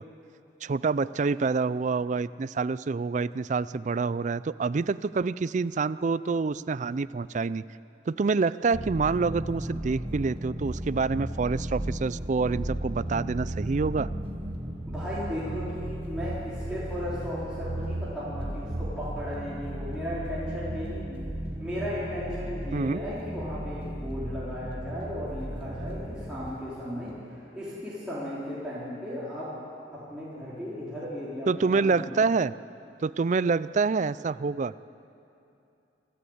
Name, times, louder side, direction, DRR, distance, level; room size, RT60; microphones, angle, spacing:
voice 1, 0.6-7.6 8.1-14.1 22.7-23.0 31.5-32.5 33.0-34.7, right 4 dB, 40° right, 17 dB, 0.4 m, -27 dB
sound 1, 8.7-26.5, right 1 dB, 25° right, 0.9 m, -35 dB
sound 2, 9.1-27.2, equal, 30° left, 1.7 m, -50 dB
voice 2, 14.9-21.3 21.6-29.5 29.9-32.2, equal, 5° right, -10 dB, 3.6 m, -36 dB
27.5 x 13.0 x 8.0 m, 2.7 s
head